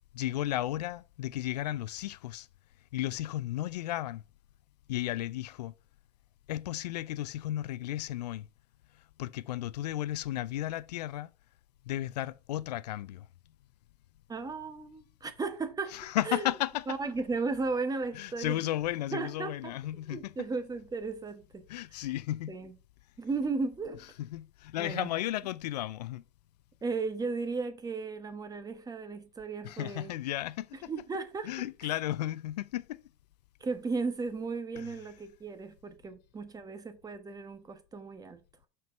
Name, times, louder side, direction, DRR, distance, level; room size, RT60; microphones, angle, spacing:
voice 1, 0.1-2.5 2.9-4.2 4.9-5.7 6.5-8.5 9.2-11.3 11.9-13.3 15.9-16.8 18.1-20.3 21.7-22.5 24.2-26.2 29.6-30.9 31.4-33.0 34.8-34.9, left 14 dB, 85° left, 0.5 m, -34 dB
voice 2, 14.3-16.0 16.2-16.5 16.9-18.6 19.1-19.7 20.1-21.6 21.9-22.0 22.5-22.7 23.2-24.0 24.8-25.1 26.8-30.1 30.8-31.5 31.8-31.9 33.6-38.4, right 4 dB, 20° right, 1.2 m, -35 dB
6.0 x 4.6 x 5.3 m
hypercardioid pair, 100°, 20 cm